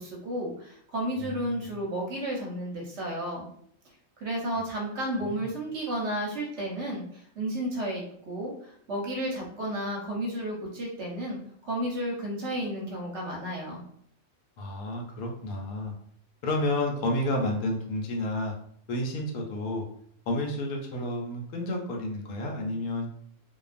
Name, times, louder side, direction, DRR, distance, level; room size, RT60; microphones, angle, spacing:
voice 1, 0.0-3.5 4.2-11.4 11.6-13.8, right 1 dB, 60° right, -2 dB, 0.8 m, -32 dB
voice 2, 1.2-1.7 5.3-5.4 14.6-15.9 16.4-18.5 18.9-19.8 20.3-23.1, left 1 dB, 75° left, 1 dB, 1.0 m, -30 dB
2.5 x 2.2 x 2.4 m, 0.65 s
omnidirectional pair, 1.5 m